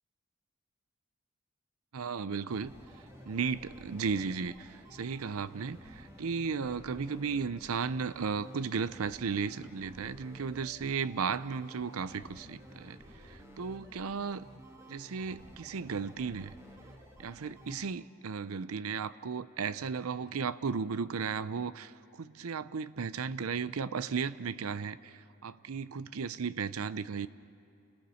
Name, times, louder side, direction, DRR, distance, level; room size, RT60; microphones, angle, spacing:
voice 1, 1.9-2.7 3.3-13.0 13.2-14.4 14.9-16.5 17.2-21.9 22.2-27.3, right 5 dB, 85° right, 0.6 m, -35 dB
sound 1, 2.5-17.9, equal, 15° right, 1.8 m, -53 dB
29.0 x 17.5 x 7.0 m
head